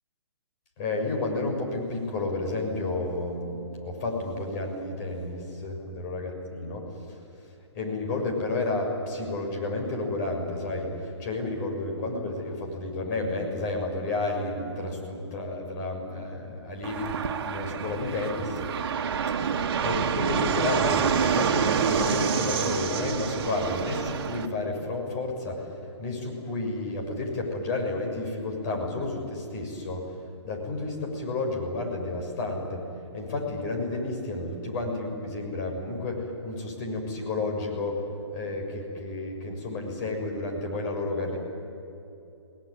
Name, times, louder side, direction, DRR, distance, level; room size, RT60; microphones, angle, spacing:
voice 1, 0.8-6.9 7.7-18.7 19.8-25.7 26.0-30.1 30.4-32.9 33.1-38.0 38.3-41.4, left 2 dB, 40° left, 1 dB, 6.7 m, -31 dB
Fixed-wing aircraft airplane, 16.8-24.5, right 6 dB, 55° right, 2.0 m, -27 dB
30.0 x 19.5 x 9.9 m, 2.9 s
hypercardioid pair, 135°, 15 cm